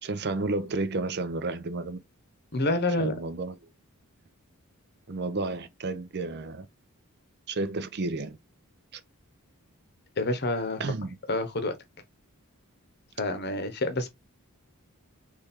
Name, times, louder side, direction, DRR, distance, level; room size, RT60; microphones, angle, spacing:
voice 1, 0.0-2.0 3.0-3.6 5.1-6.7 7.5-8.4 8.9-9.0 10.8-11.1, right 3 dB, 50° right, 0.6 m, -31 dB
voice 2, 2.5-3.1 10.2-10.8 11.3-11.7 13.2-14.1, left 2 dB, 50° left, 1.0 m, -27 dB
4.2 x 3.3 x 3.6 m
head